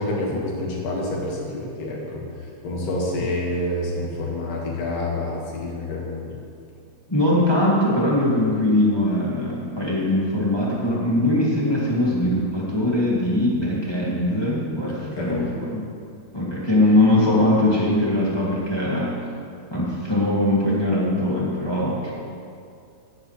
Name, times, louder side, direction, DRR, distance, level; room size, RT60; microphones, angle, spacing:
voice 1, 0.0-2.2 2.6-6.4 15.0-15.4, left 1 dB, 60° left, -3 dB, 3.3 m, -28 dB
voice 2, 7.1-15.4 16.3-19.1 19.7-22.1, left 1 dB, 10° left, -7 dB, 1.5 m, -21 dB
16.5 x 10.5 x 3.3 m, 2.4 s
omnidirectional pair, 4.3 m